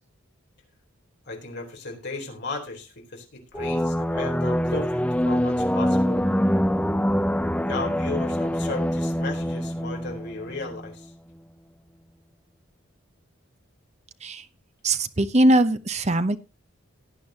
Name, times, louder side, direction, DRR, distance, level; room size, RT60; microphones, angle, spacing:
voice 1, 1.3-6.2 7.7-11.1, left 3 dB, 50° left, 2 dB, 4.0 m, -35 dB
sound 1, 3.5-10.9, equal, 5° left, 0.6 m, -25 dB
voice 2, 14.8-16.4, right 1 dB, 30° right, 11 dB, 0.9 m, -21 dB
18.0 x 9.4 x 2.9 m, 0.27 s
head